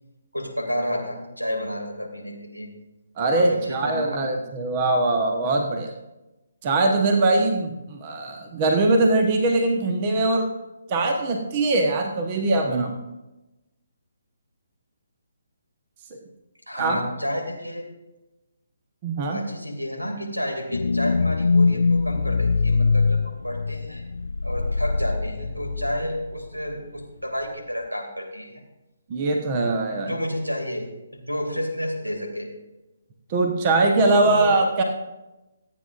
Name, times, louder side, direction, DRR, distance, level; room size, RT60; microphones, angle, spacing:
voice 1, 0.3-2.7 3.3-4.1 16.7-17.9 19.2-24.1 24.4-28.6 29.8-32.5 34.0-34.5, equal, 90° right, 2 dB, 2.7 m, -30 dB
voice 2, 3.2-5.9 6.6-10.5 10.9-13.0 16.8-17.0 19.0-19.4 29.1-30.1 33.3-34.8, right 2 dB, 30° right, 3 dB, 1.2 m, -22 dB
sound 1, 20.7-26.4 26.7-26.8, left 4 dB, 60° left, 0.3 m, -23 dB
25.5 x 8.6 x 2.6 m, 1.0 s
figure-of-eight pair, 140°, 0 cm